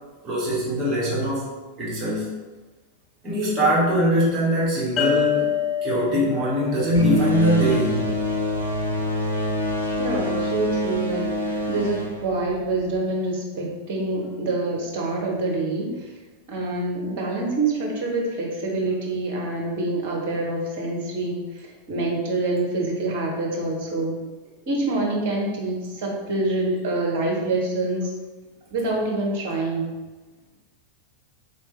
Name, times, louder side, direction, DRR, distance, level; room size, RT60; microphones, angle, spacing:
voice 1, 0.2-2.3 3.2-5.5 5.8-8.1, equal, 20° right, -8 dB, 1.2 m, -22 dB
sound 1, 5.0-8.4, left 9 dB, 30° left, 0.5 m, -27 dB
sound 2, 6.9-13.0, left 1 dB, 90° left, 0.6 m, -25 dB
voice 2, 10.0-16.1 16.5-24.2 24.7-28.1 28.7-29.9, right 2 dB, 45° right, -2 dB, 0.8 m, -26 dB
3.5 x 3.1 x 3.2 m, 1.2 s
figure-of-eight pair, 90°, 0 cm